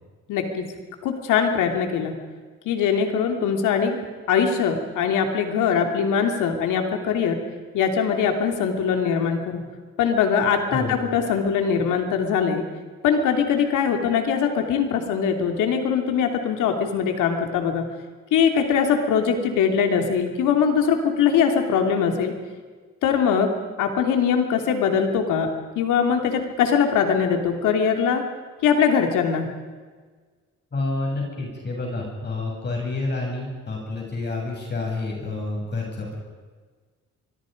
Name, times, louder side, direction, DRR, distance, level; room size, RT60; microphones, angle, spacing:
voice 1, 0.3-0.7 1.0-2.2 2.6-4.0 4.3-7.4 7.7-9.6 10.0-12.6 13.0-17.9 18.3-22.3 23.0-23.5 23.8-28.2 28.6-29.5, left 7 dB, 90° left, 5 dB, 3.1 m, -22 dB
voice 2, 10.7-11.0 30.7-36.1, left 2 dB, 35° left, -1 dB, 7.8 m, -29 dB
25.5 x 23.0 x 5.3 m, 1.5 s
cardioid pair, 90°, 30 cm